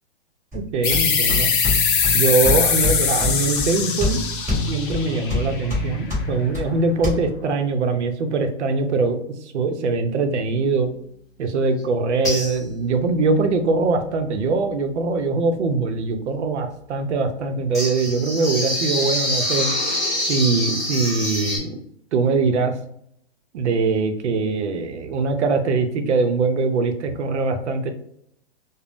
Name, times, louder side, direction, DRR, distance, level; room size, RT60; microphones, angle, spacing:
sound 1, 0.5-7.1, left 2 dB, 10° right, 1.1 m, -27 dB
voice 1, 0.5-1.5 2.1-4.2 4.7-10.9 11.4-19.7 20.3-21.8 22.1-22.7 23.5-27.9, right 4 dB, 85° right, 7 dB, 0.6 m, -22 dB
sound 2, 0.8-6.1, left 6 dB, 50° left, 0.5 m, -22 dB
sound 3, 11.8-11.9 12.2-12.9 17.7-21.6, left 1 dB, 10° left, 1.1 m, -25 dB
2.5 x 2.1 x 3.3 m, 0.73 s
hypercardioid pair, 160°, 33 cm